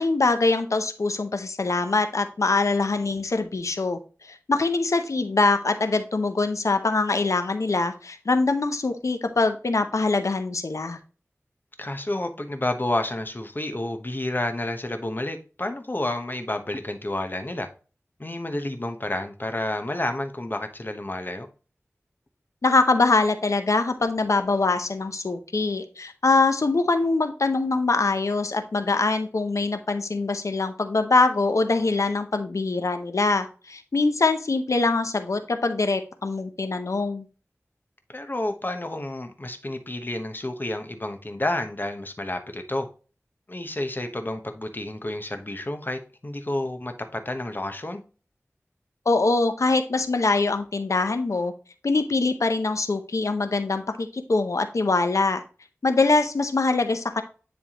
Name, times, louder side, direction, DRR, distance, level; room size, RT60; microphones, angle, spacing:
voice 1, 0.0-11.0 22.6-37.3 49.1-51.5 51.8-55.4 55.8-57.2, left 3 dB, 80° left, 8 dB, 0.7 m, -23 dB
voice 2, 11.8-17.7 18.2-21.5 38.1-42.9 43.5-48.0, left 1 dB, 40° left, 6 dB, 1.0 m, -30 dB
9.8 x 3.5 x 2.9 m, 0.36 s
wide cardioid pair, 55°, 5 cm